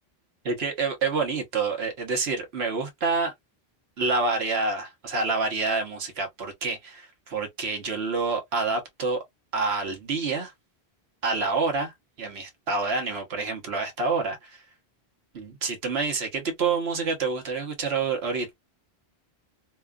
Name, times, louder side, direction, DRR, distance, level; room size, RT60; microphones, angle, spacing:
voice 1, 0.4-3.3 4.0-9.2 9.5-10.5 11.2-11.9 12.2-14.6 15.3-18.5, right 4 dB, 75° right, 1.2 m, -27 dB
2.9 x 2.2 x 2.3 m
omnidirectional pair, 1.1 m